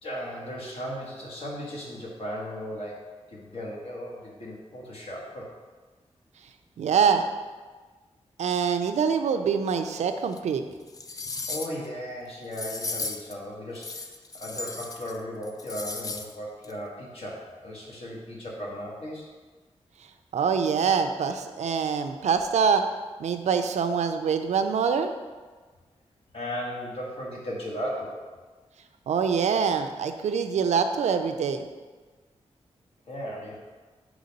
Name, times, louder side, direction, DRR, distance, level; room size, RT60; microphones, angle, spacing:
voice 1, 0.0-5.5 11.5-14.1 14.3-19.3 26.3-28.3 33.1-33.6, equal, 60° left, -3 dB, 1.4 m, -36 dB
voice 2, 6.8-7.3 8.4-10.6 20.3-22.8 23.2-25.1 29.1-31.7, right 6 dB, 90° right, 7 dB, 0.4 m, -24 dB
sound 1, 10.3-10.4 10.9-11.9 12.5-13.3 13.8-15.2 15.4-16.3 16.6-16.7, left 3 dB, 30° left, 0.4 m, -35 dB
4.8 x 3.9 x 5.2 m, 1.4 s
wide cardioid pair, 120°, 11 cm